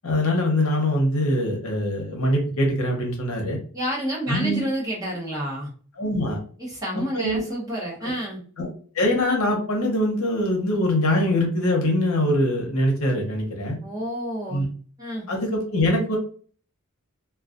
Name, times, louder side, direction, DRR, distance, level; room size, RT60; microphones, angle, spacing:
voice 1, 0.0-3.6 4.3-4.6 6.0-6.4 7.1-7.4 8.6-8.7 8.9-13.8 14.5-14.6 15.3-16.2, left 1 dB, 75° left, 1 dB, 0.8 m, -23 dB
voice 2, 3.7-5.7 6.6-8.4 13.8-14.7 15.0-15.3, equal, 15° right, -5 dB, 0.8 m, -29 dB
2.3 x 2.3 x 2.4 m, 0.42 s
head